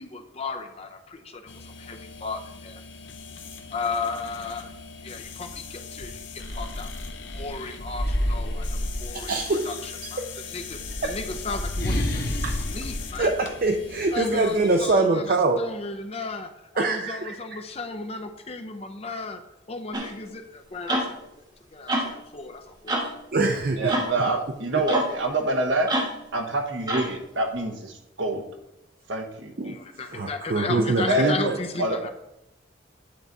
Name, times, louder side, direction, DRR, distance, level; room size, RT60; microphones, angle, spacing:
voice 1, 0.0-2.8 3.7-4.7 5.0-6.9 7.3-8.7 9.0-9.3 9.7-10.2 10.5-13.3 14.1-19.4 19.7-21.2 21.7-23.2 23.7-23.9 29.6-32.1, left 3 dB, 30° left, 6 dB, 0.6 m, -34 dB
sound 1, 1.5-14.8, left 5 dB, 70° left, 0.8 m, -41 dB
sound 2, 5.5-5.6 6.0-9.6 10.6-14.2, left 1 dB, 50° left, 1.1 m, -30 dB
voice 2, 9.3-9.8 10.2-10.3 12.4-12.5 13.2-15.6 16.8-17.3 23.3-24.0 24.7-24.8 29.6-29.8 30.1-31.6, right 3 dB, 50° right, 3 dB, 0.5 m, -24 dB
sound 3, 19.9-20.1 20.9-21.1 21.9-22.1 22.9-23.1 23.9-24.1 24.9-25.1 25.9-26.2 26.9-27.2, right 1 dB, 20° right, 1.1 m, -26 dB
voice 3, 23.8-25.9 26.3-28.4 29.1-29.5 31.1-31.3 31.8-32.0, right 2 dB, 75° right, 4 dB, 1.1 m, -26 dB
9.4 x 4.0 x 4.6 m, 0.85 s
head